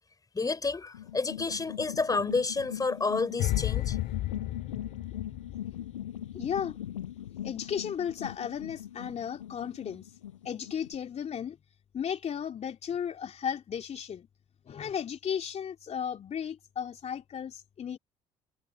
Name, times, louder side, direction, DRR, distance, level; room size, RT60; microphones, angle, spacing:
voice 1, 0.3-4.0, left 4 dB, 25° left, 4.0 m, -30 dB
sound 1, 0.9-10.9, left 11 dB, 85° left, 7.2 m, -41 dB
sound 2, 3.4-6.6 6.8-7.1, left 15 dB, 60° left, 2.2 m, -33 dB
voice 2, 6.3-6.8 7.4-10.2 10.4-11.6 11.9-14.3 14.6-18.0, left 8 dB, 45° left, 3.0 m, -35 dB
hypercardioid pair, 55°, 16 cm